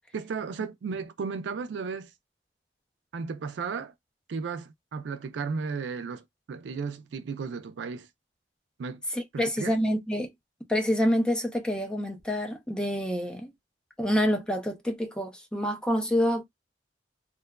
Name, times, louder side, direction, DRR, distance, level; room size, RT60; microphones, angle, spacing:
voice 1, 0.1-2.1 3.1-3.9 4.3-8.1 8.8-9.0 9.3-9.7, right 5 dB, 90° right, 0.4 m, -34 dB
voice 2, 9.1-10.3 10.7-13.5 14.0-16.4, equal, 5° left, 0.5 m, -27 dB
2.8 x 2.2 x 2.2 m
head